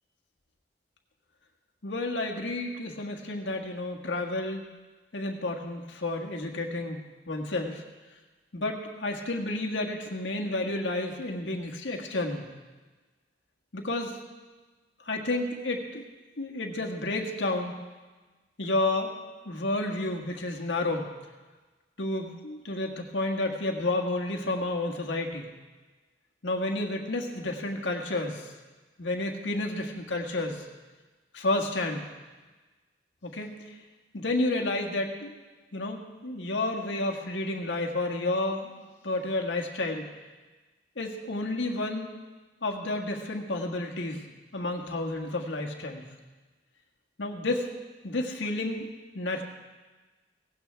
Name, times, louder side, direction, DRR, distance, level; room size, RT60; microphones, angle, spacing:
voice 1, 1.8-4.6 5.1-7.8 8.5-12.4 13.7-14.2 15.0-16.0 16.4-17.7 18.6-19.1 19.4-21.1 22.0-25.5 26.4-28.4 29.0-30.6 31.3-32.0 33.2-33.5 34.1-35.3 35.7-38.7 39.0-40.1 41.0-42.1 42.6-44.2 44.5-46.0 47.2-47.7 48.0-48.9 49.1-49.4, left 2 dB, 85° left, 2 dB, 1.7 m, -31 dB
17.5 x 16.0 x 3.4 m, 1.3 s
head